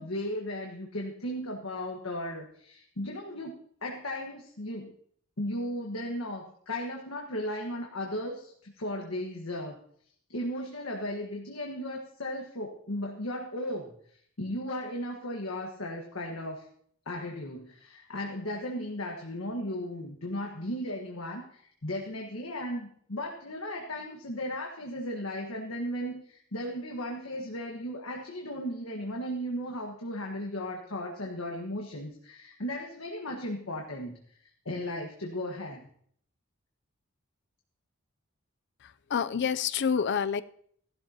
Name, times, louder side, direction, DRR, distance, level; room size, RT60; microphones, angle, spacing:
voice 1, 0.0-4.9 5.4-9.8 10.3-13.9 14.4-16.6 17.0-35.8, left 1 dB, 75° left, 0 dB, 1.5 m, -36 dB
voice 2, 38.8-40.4, left 7 dB, 55° left, 14 dB, 0.5 m, -28 dB
15.5 x 12.0 x 2.9 m, 0.62 s
head